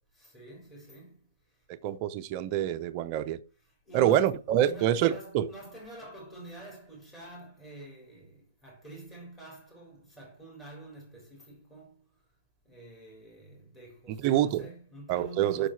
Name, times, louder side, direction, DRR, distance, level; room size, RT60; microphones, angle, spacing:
voice 1, 0.1-1.7 3.7-12.0 12.6-15.7, right 2 dB, 10° left, 4.0 m, -48 dB
voice 2, 1.8-3.4 3.9-5.5 14.2-14.6 15.1-15.7, right 11 dB, 35° right, 0.6 m, -26 dB
6.5 x 6.1 x 4.6 m
hypercardioid pair, 145°, 0 cm